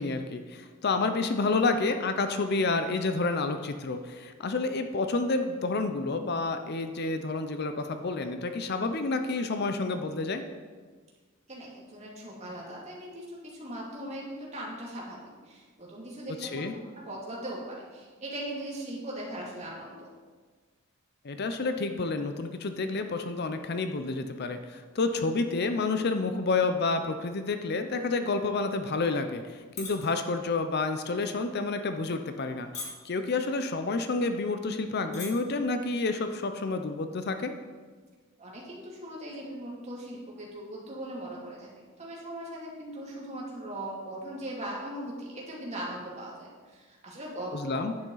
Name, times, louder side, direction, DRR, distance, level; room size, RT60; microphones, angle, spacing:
voice 1, 0.0-10.4 16.4-16.7 21.2-37.5 47.5-47.9, left 3 dB, 50° left, 8 dB, 0.6 m, -29 dB
voice 2, 11.5-15.2 15.4-20.1 38.4-41.7 42.0-47.8, right 1 dB, 35° right, -4 dB, 2.6 m, -39 dB
sound 1, 29.8-30.1 30.4-30.7 31.3-31.6 32.2-32.5 32.7-33.2 34.0-34.1 34.3-34.4 35.0-35.3 35.6-35.9, left 4 dB, 35° left, 1.8 m, -39 dB
10.5 x 8.9 x 4.0 m, 1.5 s
head